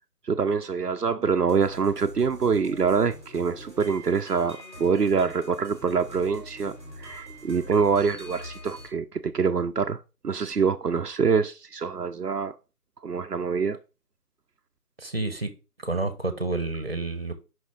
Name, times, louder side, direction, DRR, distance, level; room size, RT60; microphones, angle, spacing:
voice 1, 0.2-12.5 13.0-13.8, right 5 dB, 80° right, 0.7 m, -25 dB
sound 1, 1.5-8.9, equal, 15° right, 1.7 m, -44 dB
voice 2, 15.0-15.5 15.8-17.3, right 2 dB, 40° right, 1.2 m, -29 dB
5.9 x 5.3 x 3.8 m
figure-of-eight pair, 165°, 46 cm